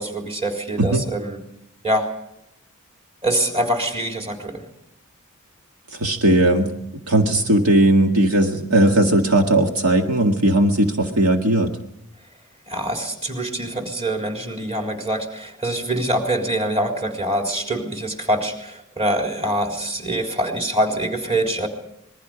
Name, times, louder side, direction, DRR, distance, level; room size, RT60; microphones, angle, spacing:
voice 1, 0.0-1.4 1.8-2.1 3.2-4.6 12.7-21.7, right 1 dB, 30° right, 2 dB, 3.9 m, -24 dB
voice 2, 5.9-6.7 7.1-11.7, right 1 dB, 75° right, 3 dB, 1.9 m, -17 dB
27.5 x 21.5 x 5.1 m, 0.82 s
head